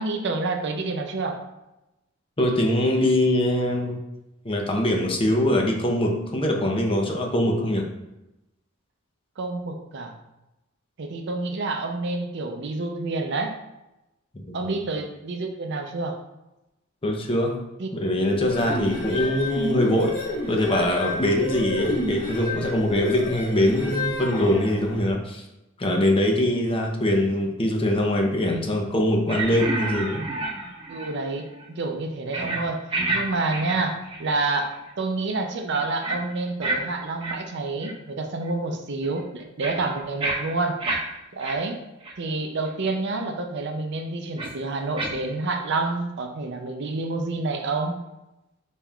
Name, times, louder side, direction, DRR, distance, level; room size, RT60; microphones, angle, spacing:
voice 1, 0.0-1.4 9.4-10.2 11.0-13.5 14.5-16.2 17.8-17.9 18.5-18.8 30.9-32.9 33.1-40.8 41.3-41.8 42.2-48.0, right 3 dB, 60° right, 4 dB, 0.5 m, -28 dB
voice 2, 2.4-4.0 4.4-7.9 14.3-14.8 17.0-17.5 17.9-20.1 20.5-25.4 25.8-30.2, left 1 dB, 25° left, 1 dB, 0.7 m, -23 dB
sound 1, 18.3-25.1, left 1 dB, 45° left, 1.3 m, -30 dB
sound 2, 29.3-31.2 31.5-31.7 32.3-32.6 32.9-33.2 33.5-34.4 34.7-34.9 36.0-36.2 36.6-36.8 37.2-37.3 37.8-37.9 38.5-38.6 39.0-41.0 41.4-41.5 42.0-42.1 42.7-42.8 44.4-44.5 45.0-45.1, right 2 dB, 25° right, 0.8 m, -29 dB
5.2 x 4.1 x 2.4 m, 0.94 s
head